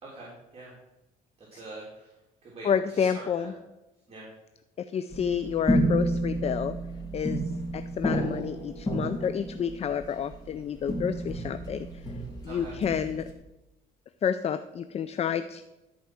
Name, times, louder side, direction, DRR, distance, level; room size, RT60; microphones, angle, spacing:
voice 1, 0.0-0.7 1.5-2.1 2.4-2.7 2.9-3.5 4.1-4.3 12.5-12.7, right 2 dB, 35° right, -4 dB, 3.2 m, -44 dB
voice 2, 2.6-3.5 4.9-6.8 7.1-7.4 7.7-11.9 12.4-13.2 14.2-15.6, left 8 dB, 40° left, 11 dB, 0.5 m, -29 dB
sound 1, 5.1-13.3, right 1 dB, 20° left, 2.8 m, -31 dB
13.5 x 4.6 x 6.2 m, 0.98 s
cardioid pair, 110°, 17 cm